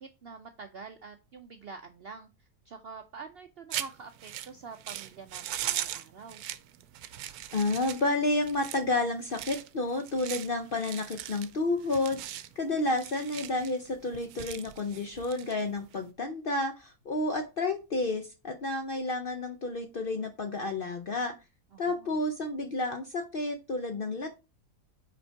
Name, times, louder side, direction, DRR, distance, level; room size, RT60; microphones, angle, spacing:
voice 1, 0.0-2.3 2.7-6.4 21.7-22.2, right 5 dB, 65° right, 7 dB, 0.6 m, -46 dB
sound 1, 3.7-16.1, right 12 dB, 80° right, 1.1 m, -40 dB
voice 2, 7.5-12.2 12.6-21.3 21.8-24.3, left 2 dB, 55° left, 6 dB, 0.6 m, -30 dB
5.3 x 4.4 x 4.4 m, 0.28 s
omnidirectional pair, 1.6 m